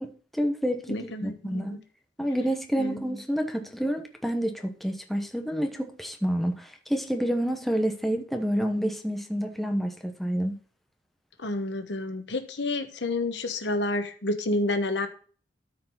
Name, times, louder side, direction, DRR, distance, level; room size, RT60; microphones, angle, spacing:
voice 1, 0.0-1.8 2.2-10.6, equal, ahead, 0.9 m, -28 dB
voice 2, 0.9-1.8 2.8-3.0 11.4-15.1, left 2 dB, 85° left, 1.1 m, -29 dB
13.0 x 4.8 x 4.0 m
head